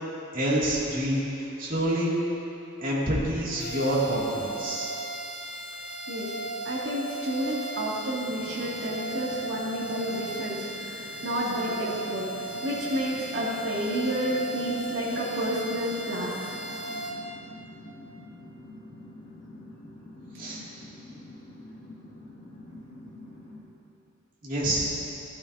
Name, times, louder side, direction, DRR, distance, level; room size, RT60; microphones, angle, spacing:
voice 1, 0.3-2.2 2.8-4.9 20.4-20.6 24.4-25.0, right 1 dB, 45° right, -6 dB, 2.4 m, -27 dB
sound 1, 3.6-17.1, right 2 dB, 65° left, 2.0 m, -36 dB
voice 2, 6.6-16.5, equal, 60° right, -6 dB, 2.4 m, -30 dB
sound 2, 8.2-23.6, left 1 dB, 40° left, 2.4 m, -46 dB
15.5 x 11.0 x 2.8 m, 2.9 s
head